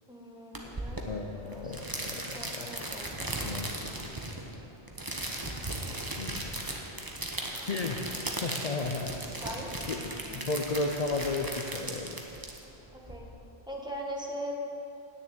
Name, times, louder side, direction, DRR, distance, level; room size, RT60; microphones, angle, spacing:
voice 1, 0.1-1.9 2.3-3.6 7.5-8.1 9.4-10.5 12.9-13.3 13.7-14.5, equal, 5° right, -3 dB, 1.6 m, -42 dB
sound 1, 0.5-13.2, right 1 dB, 20° right, 1.0 m, -37 dB
voice 2, 1.0-2.4 3.2-3.7 6.2-6.4 7.6-8.0 8.4-9.1 9.9-10.0 10.3-12.1, left 3 dB, 40° left, 2 dB, 0.7 m, -33 dB
10.0 x 6.9 x 8.8 m, 2.9 s
omnidirectional pair, 1.1 m